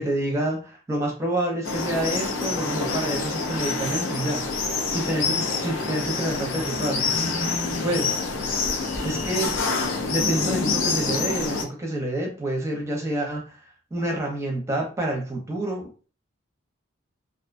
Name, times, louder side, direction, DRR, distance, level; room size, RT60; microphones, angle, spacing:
voice 1, 0.0-4.5 4.9-7.1 7.8-8.1 9.0-9.6 10.1-13.6 13.9-16.1, right 1 dB, 15° right, 0 dB, 0.6 m, -28 dB
sound 1, 1.6-11.6, left 4 dB, 75° left, 0.5 m, -26 dB
2.4 x 2.2 x 2.4 m, 0.37 s
head